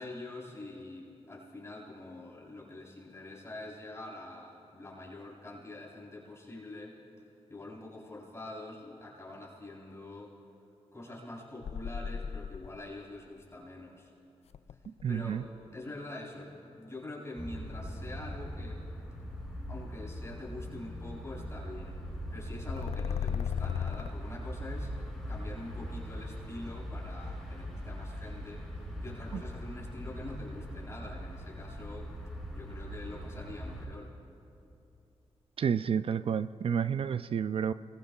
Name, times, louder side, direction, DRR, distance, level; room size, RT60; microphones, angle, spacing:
voice 1, 0.0-7.0 7.5-10.4 10.9-14.1 15.1-15.4 15.7-18.8 19.7-22.0 22.3-24.9 25.3-28.7 29.0-32.1 32.5-34.1, left 2 dB, 25° left, -5 dB, 3.9 m, -45 dB
sound 1, 11.6-12.9 14.5-15.5 22.4-24.1, left 8 dB, 70° left, 0.4 m, -35 dB
voice 2, 15.0-15.4 29.3-29.4 35.6-37.7, right 7 dB, 55° right, 14 dB, 0.4 m, -30 dB
sound 2, 17.4-33.9, equal, ahead, 3.9 m, -41 dB
27.5 x 20.5 x 2.4 m, 2.7 s
cardioid pair, 70°, 11 cm